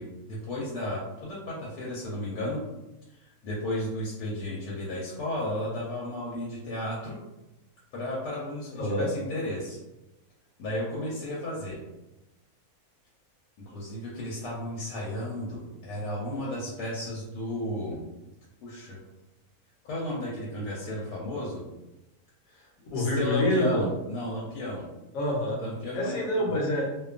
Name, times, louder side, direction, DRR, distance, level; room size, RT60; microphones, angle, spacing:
voice 1, 0.0-2.6 3.1-7.2 7.9-9.8 10.6-11.8 13.6-18.1 18.6-19.0 19.8-21.6 22.9-24.8 25.6-26.5, left 1 dB, 90° left, -5 dB, 1.1 m, -33 dB
voice 2, 8.8-9.1 22.5-23.9 25.1-25.6 25.9-26.9, left 1 dB, 70° left, -2 dB, 1.0 m, -27 dB
2.7 x 2.2 x 2.4 m, 0.98 s
omnidirectional pair, 1.6 m